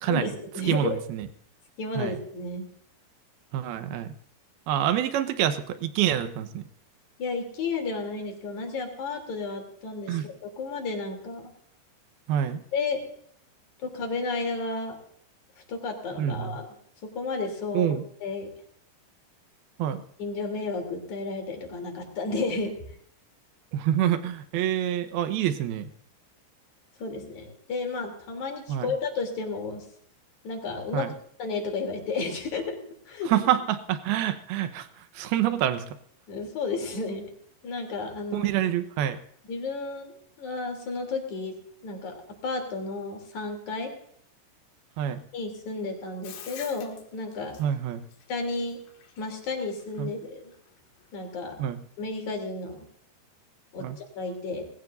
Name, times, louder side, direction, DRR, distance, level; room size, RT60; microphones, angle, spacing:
voice 1, 0.0-1.0 1.8-2.7 7.2-11.5 12.7-13.0 13.8-15.0 15.7-16.7 17.2-17.9 18.2-18.5 20.2-22.7 27.0-29.8 30.4-31.1 31.4-32.8 33.1-33.3 36.3-37.3 37.6-38.5 39.5-41.5 41.8-42.2 42.4-43.9 45.3-47.6 48.3-48.8 49.2-50.5 51.1-51.6 52.0-52.9 53.7-54.7, left 3 dB, 45° left, 3 dB, 4.3 m, -32 dB
voice 2, 0.7-1.3 2.0-2.2 3.5-4.1 4.7-6.6 10.1-10.3 12.3-12.6 16.2-16.6 17.7-18.0 19.8-20.0 23.7-25.9 28.7-28.9 30.9-31.1 33.3-34.9 35.1-35.8 38.3-39.2 45.0-45.2 47.6-48.0 50.0-50.1 51.6-51.8 53.8-54.0, right 11 dB, 75° right, 10 dB, 2.6 m, -26 dB
Bathtub (filling or washing), 46.2-51.6, left 7 dB, 90° left, 4.4 m, -48 dB
20.0 x 17.5 x 2.6 m, 0.64 s
omnidirectional pair, 5.0 m